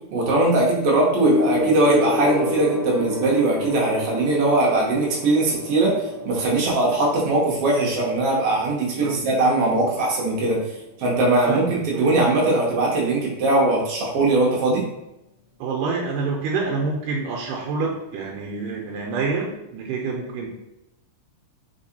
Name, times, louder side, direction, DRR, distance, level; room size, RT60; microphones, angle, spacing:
voice 1, 0.1-10.6 11.0-14.8, right 2 dB, 70° right, -3 dB, 1.4 m, -20 dB
Gong, 1.2-10.9 11.9-12.1, left 3 dB, 70° left, 1.5 m, -30 dB
voice 2, 11.5-12.2 15.6-20.5, right 4 dB, 90° right, -1 dB, 2.2 m, -27 dB
4.6 x 3.5 x 2.7 m, 0.87 s
omnidirectional pair, 3.7 m